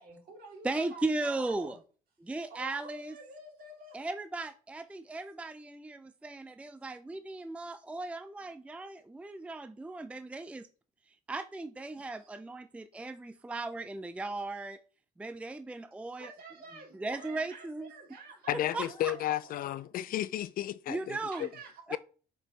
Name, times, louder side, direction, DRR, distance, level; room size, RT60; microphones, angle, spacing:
voice 1, 0.0-1.8 2.5-4.0 7.0-7.2 11.9-12.2 16.2-19.7 21.3-22.0, right 3 dB, 60° right, 3.1 m, -49 dB
voice 2, 0.6-1.8 2.2-3.2 3.9-10.7 11.1-14.8 15.2-16.3 16.9-17.9 18.7-19.1 20.9-21.5 21.9-22.0, right 2 dB, 5° right, 0.4 m, -37 dB
voice 3, 18.5-21.5 21.9-22.0, left 12 dB, 60° left, 0.5 m, -33 dB
7.3 x 4.8 x 3.3 m
cardioid pair, 110°, 17 cm